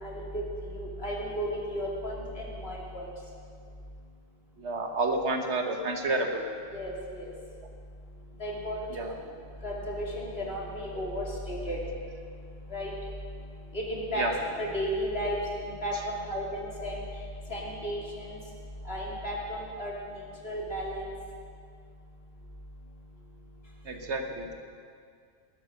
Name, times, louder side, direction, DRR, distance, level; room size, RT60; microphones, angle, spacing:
voice 1, 0.0-0.4 0.7-3.0 6.7-7.3 8.4-9.0 9.6-11.8 12.7-12.9 13.7-15.4 15.8-17.0 17.5-18.4 18.9-19.9 20.4-21.0, equal, 60° left, -4 dB, 3.1 m, -34 dB
voice 2, 4.6-6.4 8.9-9.0 14.2-14.3 23.8-24.5, right 2 dB, 75° right, 4 dB, 1.6 m, -29 dB
19.0 x 9.0 x 6.5 m, 2.2 s
omnidirectional pair, 1.2 m